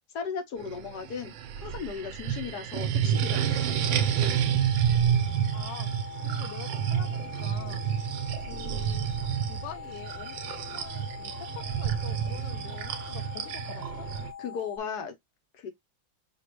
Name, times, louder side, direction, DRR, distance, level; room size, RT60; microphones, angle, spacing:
voice 1, 0.1-1.3 1.6-4.0 14.4-15.1 15.5-15.7, left 6 dB, 60° left, 1.5 m, -36 dB
sound 1, 0.6-14.3, right 9 dB, 80° right, 1.4 m, -29 dB
sound 2, 3.1-14.8, left 8 dB, 30° right, 0.8 m, -43 dB
voice 2, 5.5-5.9 6.2-7.9 8.5-9.1 9.5-14.1, left 10 dB, 75° left, 1.2 m, -45 dB
6.0 x 2.8 x 3.0 m
omnidirectional pair, 2.1 m